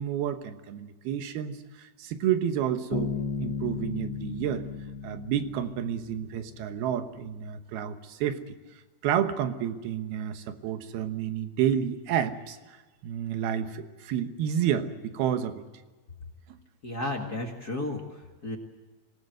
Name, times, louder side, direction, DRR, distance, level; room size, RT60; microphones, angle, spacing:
voice 1, 0.0-4.7 5.0-8.6 9.0-12.8 13.0-15.6 16.5-16.6, right 9 dB, 85° right, 9 dB, 3.2 m, -30 dB
Bass guitar, 2.9-6.6, left 6 dB, 65° left, 1.2 m, -35 dB
voice 2, 16.8-18.6, left 2 dB, 35° left, 1 dB, 1.8 m, -33 dB
26.0 x 18.0 x 7.8 m, 1.3 s
omnidirectional pair, 4.3 m